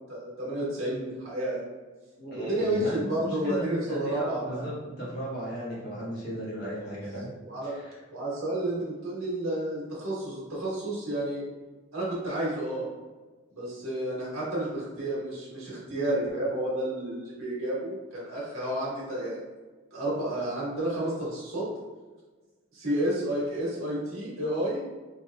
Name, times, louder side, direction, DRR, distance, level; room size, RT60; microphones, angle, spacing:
voice 1, 0.1-1.7 2.3-4.6 7.4-7.7 8.1-11.4 11.9-12.9 13.5-19.4 19.9-21.6 22.7-24.8, right 1 dB, 85° right, -6 dB, 1.4 m, -31 dB
voice 2, 2.2-7.3 7.6-8.0, equal, 50° left, -7 dB, 1.3 m, -35 dB
4.1 x 3.0 x 2.2 m, 1.3 s
head